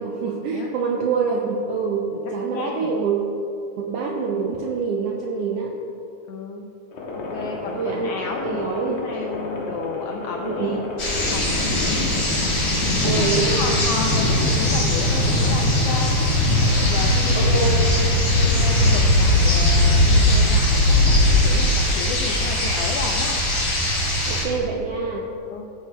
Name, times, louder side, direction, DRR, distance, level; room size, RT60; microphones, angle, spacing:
voice 1, 0.0-3.3 3.7-5.8 7.7-9.0 10.4-10.8 13.0-13.8 17.3-18.0 24.3-25.3, right 5 dB, 80° right, 0 dB, 1.4 m, -26 dB
voice 2, 2.5-2.9 6.3-6.6 7.3-12.0 12.7-16.4 16.7-17.8 18.3-23.4 25.5-25.7, left 4 dB, 80° left, 1 dB, 1.4 m, -32 dB
sound 1, 7.0-22.1, left 1 dB, 60° left, 1.7 m, -21 dB
sound 2, 11.0-24.4, left 1 dB, 30° left, 1.9 m, -24 dB
14.5 x 7.9 x 2.3 m, 2.7 s
omnidirectional pair, 3.4 m